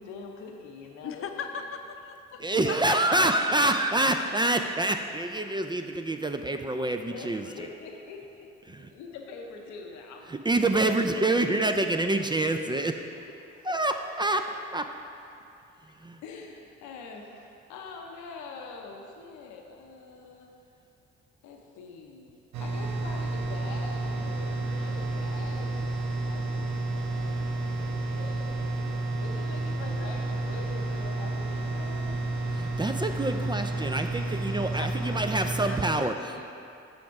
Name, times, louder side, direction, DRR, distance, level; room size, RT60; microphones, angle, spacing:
voice 1, 0.0-1.5 2.3-2.7 6.3-6.4 7.0-10.5 11.2-11.7 13.3-13.8 15.9-20.5 21.4-28.7 29.2-32.3, left 4 dB, 85° left, 1 dB, 0.7 m, -45 dB
voice 2, 1.0-2.2 2.7-3.2 34.7-36.5, left 6 dB, 50° left, 6 dB, 0.7 m, -39 dB
voice 3, 2.4-7.4 8.7-8.9 10.3-13.0 13.6-14.4 14.7-14.8 15.8-16.2 32.5-36.4, right 2 dB, 15° right, 6 dB, 0.3 m, -27 dB
sound 1, 22.5-35.9, right 2 dB, 70° right, 0.8 m, -31 dB
5.9 x 5.2 x 4.6 m, 2.7 s
supercardioid pair, 55°, 29 cm